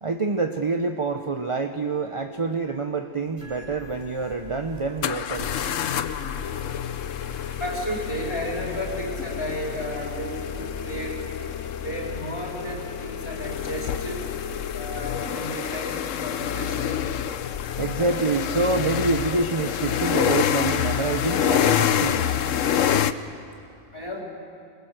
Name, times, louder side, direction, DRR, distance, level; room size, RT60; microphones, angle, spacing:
voice 1, 0.0-5.5 17.8-22.3, right 3 dB, 30° right, 6 dB, 0.7 m, -26 dB
sound 1, 3.4-16.9, left 1 dB, 50° right, 6.4 m, -47 dB
sound 2, 3.9-4.0 5.0-23.1, left 9 dB, 70° left, 1.1 m, -27 dB
voice 2, 7.6-11.2 11.8-14.2 14.7-16.8 23.9-24.2, equal, 20° left, -2 dB, 4.6 m, -33 dB
25.5 x 21.0 x 8.0 m, 2.5 s
omnidirectional pair, 1.4 m